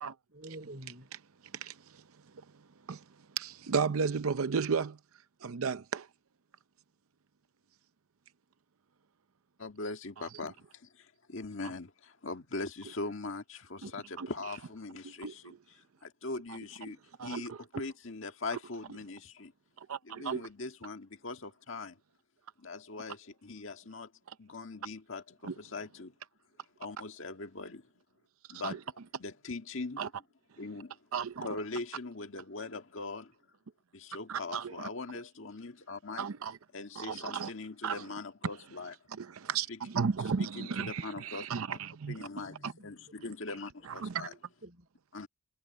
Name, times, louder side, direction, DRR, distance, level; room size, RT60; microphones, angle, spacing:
voice 1, 0.3-1.1 42.3-43.0 44.3-44.8, right 1 dB, 50° right, 5.2 m, -49 dB
voice 2, 1.5-2.0 2.9-3.0 3.4-5.0 5.4-6.1 13.8-13.9 14.2-14.3 15.2-15.3 17.2-17.6 19.8-20.4 25.5-25.6 28.6-28.8 30.0-30.1 31.1-31.5 34.3-34.7 36.2-36.6 37.0-37.5 37.8-38.0 39.2-42.3 42.6-42.7 44.0-44.3, right 6 dB, 85° right, 0.6 m, -34 dB
voice 3, 9.6-19.5 20.0-22.0 22.6-24.1 24.4-26.1 26.8-27.9 28.5-28.8 29.2-30.1 30.6-31.0 31.4-33.3 33.9-36.3 36.7-39.0 39.7-39.8 40.4-41.8 42.1-44.3 45.1-45.3, left 3 dB, 65° left, 1.8 m, -41 dB
head